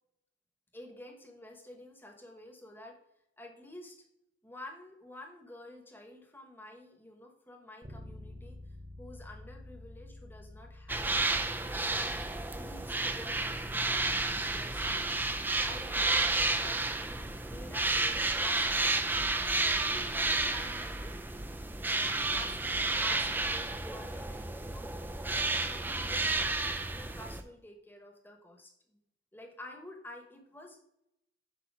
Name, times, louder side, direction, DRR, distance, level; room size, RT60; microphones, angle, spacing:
voice 1, 0.7-3.0 3.4-4.0 4.4-8.6 9.0-12.1 12.5-15.3 15.6-19.0 19.8-21.1 21.9-25.0 25.2-29.0 29.3-30.8, left 1 dB, 10° left, 2 dB, 1.1 m, -50 dB
Bass guitar, 7.8-17.6, left 1 dB, 30° right, 0.8 m, -52 dB
sound 1, 10.9-27.4, right 2 dB, 10° right, 0.4 m, -31 dB
8.1 x 2.8 x 6.1 m, 0.79 s
head